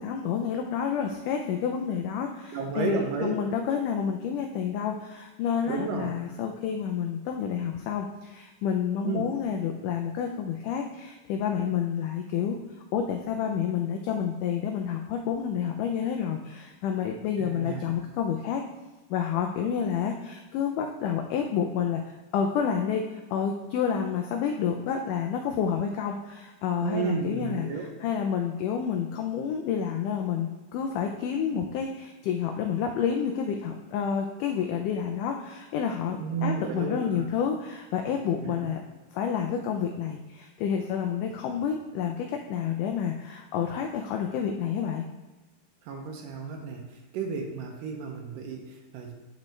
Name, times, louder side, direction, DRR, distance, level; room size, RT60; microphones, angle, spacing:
voice 1, 0.0-12.6 12.9-18.6 19.1-22.0 22.3-23.1 23.3-38.8 39.1-45.1, left 7 dB, 85° left, 3 dB, 1.8 m, -29 dB
voice 2, 2.5-3.3 5.7-6.1 9.0-9.2 17.4-17.9 26.8-27.9 36.2-37.2 38.4-38.5 45.9-46.8 47.1-49.1, right 5 dB, 75° right, 2 dB, 2.3 m, -32 dB
9.3 x 5.2 x 3.2 m, 1.2 s
omnidirectional pair, 4.2 m